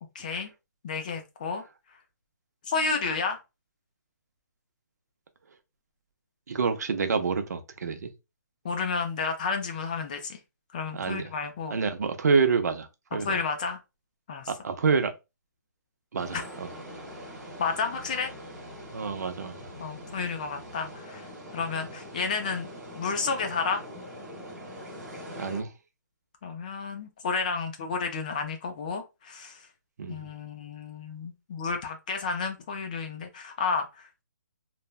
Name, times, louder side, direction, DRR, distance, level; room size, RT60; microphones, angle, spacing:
voice 1, 0.2-0.5 0.8-1.6 2.7-3.4 8.6-10.4 10.7-11.8 13.2-13.8 14.3-14.5 16.3-16.4 17.6-18.3 19.8-21.3 21.5-22.7 22.9-23.8 26.4-29.6 30.1-34.2, left 5 dB, 25° left, 0.4 m, -31 dB
voice 2, 6.5-8.1 10.9-11.3 11.7-13.4 14.5-15.1 16.1-16.7 18.9-19.6 25.3-25.7 30.0-30.3, right 5 dB, 60° right, 0.6 m, -28 dB
sound 1, 16.2-25.6, equal, 10° right, 1.2 m, -43 dB
3.2 x 2.1 x 2.3 m
hypercardioid pair, 165°, 10 cm